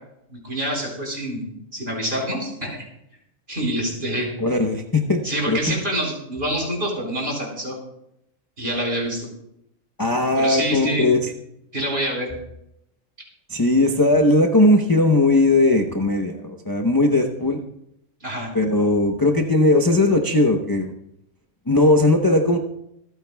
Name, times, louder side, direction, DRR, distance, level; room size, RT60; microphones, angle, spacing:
voice 1, 0.3-1.5 1.7-2.8 3.5-4.3 5.2-7.8 8.6-9.3 10.4-11.1 11.7-12.3 18.2-18.5, right 1 dB, 45° right, -1 dB, 4.7 m, -26 dB
voice 2, 4.4-5.2 5.5-5.6 10.0-11.3 13.5-17.6 18.5-20.9 21.7-22.6, left 2 dB, 20° left, 2 dB, 0.8 m, -18 dB
26.5 x 9.2 x 2.3 m, 0.78 s
omnidirectional pair, 1.4 m